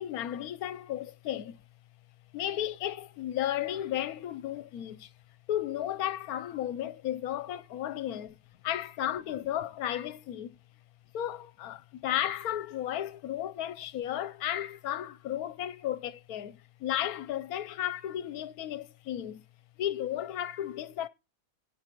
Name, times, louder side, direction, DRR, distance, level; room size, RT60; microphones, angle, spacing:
voice 1, 0.0-1.6 2.3-5.1 5.5-8.4 8.6-10.6 11.1-19.4 19.8-21.1, left 11 dB, 70° left, 1.1 m, -34 dB
17.0 x 7.8 x 3.0 m
omnidirectional pair, 1.7 m